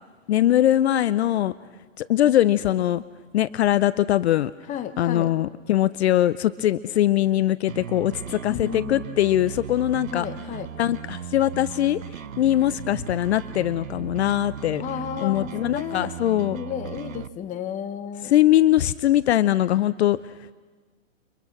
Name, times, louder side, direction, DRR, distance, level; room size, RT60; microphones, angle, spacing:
voice 1, 0.3-1.5 2.0-3.0 3.3-4.5 5.0-10.3 10.8-12.0 12.4-14.8 15.2-16.6 18.2-20.5, left 13 dB, 55° left, 17 dB, 0.7 m, -21 dB
voice 2, 4.7-5.3 8.5-9.0 10.1-10.7 14.8-16.1 16.5-18.3, left 9 dB, 20° left, 11 dB, 1.2 m, -32 dB
sound 1, 7.7-17.3, right 8 dB, 90° right, 1.0 m, -37 dB
30.0 x 25.0 x 6.1 m, 1.4 s
hypercardioid pair, 140°, 39 cm